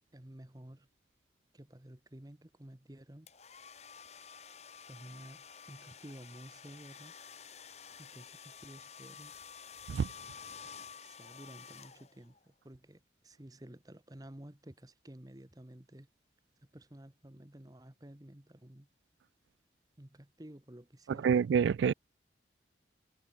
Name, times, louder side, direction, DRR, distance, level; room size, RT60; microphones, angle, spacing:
voice 1, 0.1-0.9 1.5-3.3 4.9-7.1 8.0-9.3 11.0-16.1 16.7-18.9 20.0-21.5, right 1 dB, 20° right, 1.1 m, -52 dB
sound 1, 3.3-12.4, left 6 dB, 35° left, 2.4 m, -51 dB
voice 2, 21.2-21.9, right 7 dB, 80° right, 0.3 m, -27 dB
head